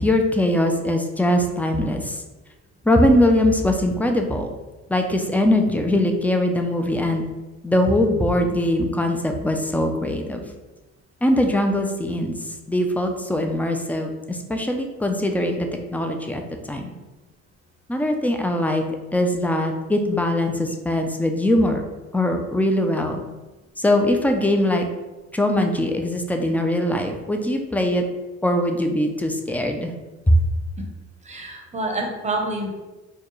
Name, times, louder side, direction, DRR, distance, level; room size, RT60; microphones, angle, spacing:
voice 1, 0.0-2.2 2.8-4.5 4.9-7.3 7.6-10.4 11.2-12.4 12.7-15.7 15.9-16.4 16.7-16.9 17.9-18.8 19.1-21.8 22.1-23.2 23.8-24.8 25.3-28.0 28.4-29.9 30.3-30.4, left 1 dB, 5° left, 4 dB, 0.4 m, -21 dB
voice 2, 31.2-32.7, right 2 dB, 25° right, 1 dB, 0.8 m, -27 dB
4.4 x 2.3 x 3.1 m, 1.1 s
cardioid pair, 90°, 30 cm